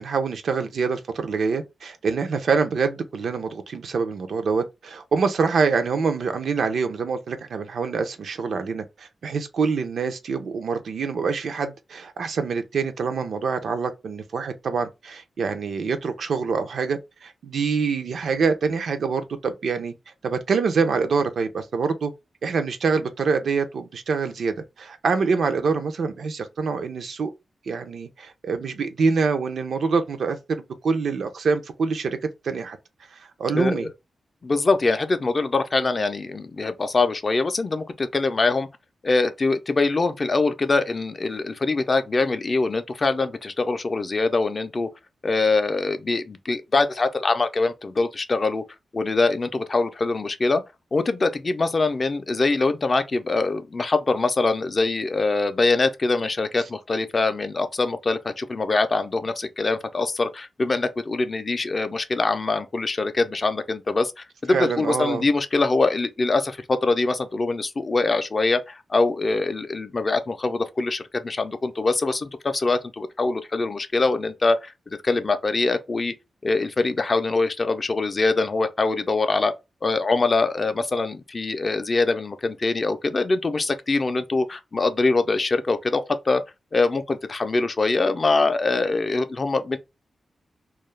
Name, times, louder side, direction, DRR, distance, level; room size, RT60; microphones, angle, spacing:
voice 1, 0.0-19.9 20.2-22.1 22.4-27.3 27.7-32.2 32.4-32.8 33.1-33.9 64.5-65.3, right 5 dB, 80° right, 0.4 m, -25 dB
voice 2, 33.5-33.9 34.4-38.7 39.0-44.9 45.2-48.6 48.9-50.6 50.9-74.7 75.0-76.1 76.4-79.5 79.8-86.4 86.7-89.8, left 3 dB, 40° left, 0.3 m, -23 dB
2.3 x 2.0 x 3.1 m
cardioid pair, 85°, 0 cm